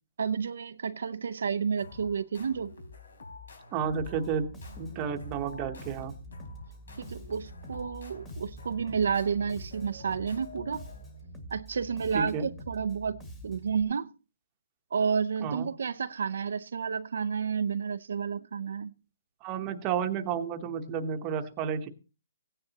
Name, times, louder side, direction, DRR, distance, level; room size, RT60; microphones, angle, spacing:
voice 1, 0.2-2.7 7.0-10.9 11.5-14.1 14.9-18.9, right 6 dB, 70° right, 0.6 m, -31 dB
sound 1, 1.8-11.3, left 3 dB, 90° left, 4.1 m, -48 dB
voice 2, 3.7-4.5 4.8-6.1 12.1-12.5 15.4-15.7 19.4-21.9, right 7 dB, 20° right, 1.0 m, -31 dB
Bass guitar, 3.9-13.8, right 1 dB, 15° left, 1.7 m, -46 dB
16.0 x 9.8 x 2.9 m
hypercardioid pair, 170°, 0 cm